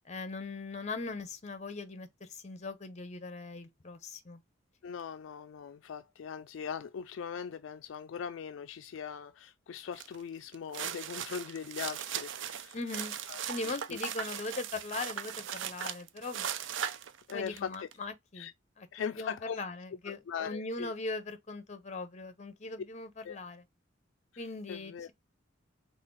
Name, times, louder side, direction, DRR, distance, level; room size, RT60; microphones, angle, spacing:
voice 1, 0.1-4.4 12.7-13.2 13.5-16.5 16.8-17.0 17.3-18.5 18.8-23.6 24.4-25.1, left 3 dB, 35° left, 0.8 m, -40 dB
voice 2, 4.8-12.8 13.3-14.0 17.3-17.9 18.3-18.5 18.9-19.6 20.1-20.9 23.2-23.4 24.7-25.1, left 7 dB, 70° left, 0.3 m, -40 dB
sound 1, 10.0-10.2 10.5-17.9, right 9 dB, 65° right, 0.5 m, -38 dB
4.2 x 3.4 x 3.7 m
head